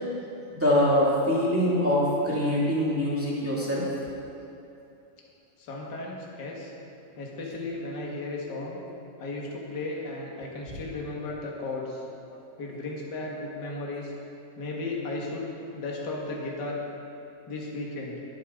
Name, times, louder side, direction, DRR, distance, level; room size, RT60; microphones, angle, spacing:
voice 1, 0.5-3.8, equal, 5° right, -7 dB, 1.5 m, -24 dB
voice 2, 5.6-6.7 7.2-8.8 9.2-12.0 12.6-14.1 14.5-15.4 15.7-16.8 17.5-18.2, left 2 dB, 40° left, -2 dB, 1.6 m, -35 dB
21.0 x 8.4 x 3.8 m, 2.7 s
omnidirectional pair, 4.1 m